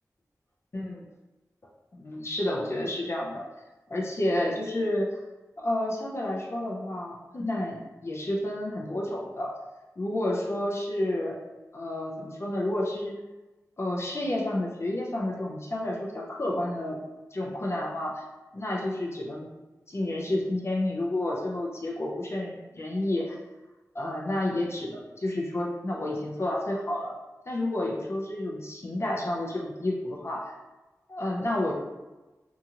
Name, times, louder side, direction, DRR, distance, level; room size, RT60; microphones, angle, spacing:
voice 1, 0.7-1.1 1.9-3.5 3.9-5.1 5.6-9.5 10.0-11.4 11.7-13.1 13.8-17.0 17.3-18.2 18.5-19.5 19.9-23.4 23.9-27.1 27.5-30.5 31.1-31.7, left 1 dB, 45° left, -2 dB, 0.5 m, -30 dB
2.7 x 2.4 x 2.8 m, 1.1 s
wide cardioid pair, 80°, 6 cm